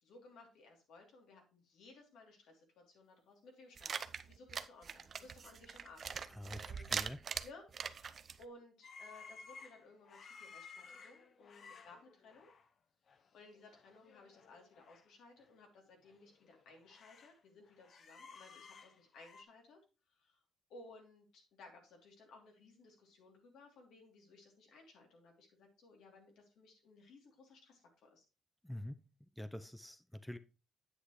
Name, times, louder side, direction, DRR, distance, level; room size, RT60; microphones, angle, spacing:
voice 1, 0.0-7.0 7.4-12.5 13.3-19.8 20.1-20.4 20.7-28.2, left 3 dB, 80° left, 1 dB, 2.9 m, -59 dB
sound 1, 3.8-8.4, right 6 dB, 50° right, 0.5 m, -42 dB
voice 2, 6.3-7.2 28.6-29.0 29.4-30.4, left 1 dB, 5° left, 11 dB, 0.6 m, -46 dB
sound 2, 8.8-12.7 13.1-13.3 13.5-15.0 15.4-15.5 16.0-17.4 17.7-19.4, left 5 dB, 55° left, 0.8 m, -57 dB
8.7 x 7.7 x 3.1 m, 0.32 s
cardioid pair, 90°, 0 cm